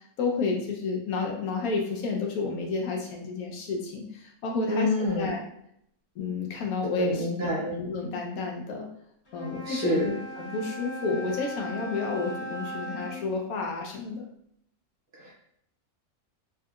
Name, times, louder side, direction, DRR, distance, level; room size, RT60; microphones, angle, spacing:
voice 1, 0.0-5.4 6.2-8.9 9.3-14.2, left 4 dB, 80° left, 0 dB, 1.1 m, -31 dB
voice 2, 4.7-5.4 7.0-7.6 9.6-10.1 15.2-15.3, left 1 dB, 50° right, -5 dB, 0.7 m, -27 dB
Wind instrument woodwind instrument, 9.3-13.2, equal, 50° left, 1.6 m, -38 dB
3.4 x 2.7 x 2.3 m, 0.72 s
omnidirectional pair, 1.5 m